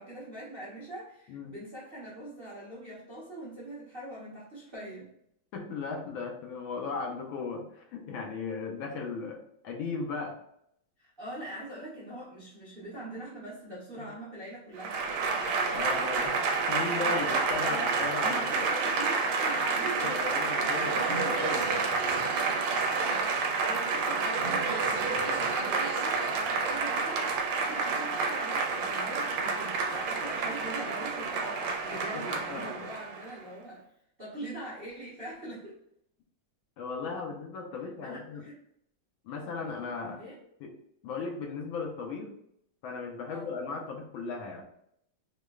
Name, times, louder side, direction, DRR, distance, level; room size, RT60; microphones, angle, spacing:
voice 1, 0.0-5.1 11.0-15.0 17.1-17.2 17.7-17.9 18.2-20.5 23.3-33.8 34.2-35.8 38.0-38.6 40.2-40.4 43.3-43.5, right 1 dB, 40° right, -8 dB, 0.8 m, -42 dB
voice 2, 5.5-9.4 9.6-10.4 14.0-14.1 15.7-16.4 16.7-18.7 20.0-21.8 22.8-23.1 32.1-32.7 36.8-38.4 39.2-40.2 40.6-40.7 41.0-42.3 42.8-44.6, left 4 dB, 75° left, 1 dB, 1.4 m, -36 dB
Applause / Crowd, 14.8-33.3, right 4 dB, 85° right, 1.4 m, -29 dB
4.9 x 2.1 x 2.3 m, 0.72 s
omnidirectional pair, 2.3 m